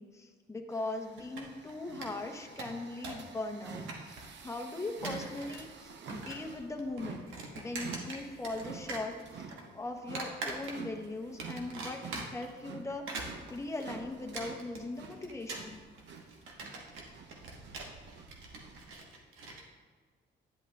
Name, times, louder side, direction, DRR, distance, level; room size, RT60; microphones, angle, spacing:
voice 1, 0.0-7.3 7.5-9.5 9.7-15.8, left 2 dB, 15° left, 3 dB, 0.9 m, -40 dB
sound 1, 0.7-18.9, right 5 dB, 65° right, 0.8 m, -49 dB
sound 2, 1.2-1.7 2.0-2.1 2.4-3.3 3.6-4.4 4.9-5.6 5.9-6.5 6.8-8.6 8.9-9.6 10.2-11.0 11.4-12.5 12.9-19.6, right 3 dB, 90° right, 1.2 m, -42 dB
10.5 x 7.9 x 2.4 m, 1.5 s
cardioid pair, 90°, 20 cm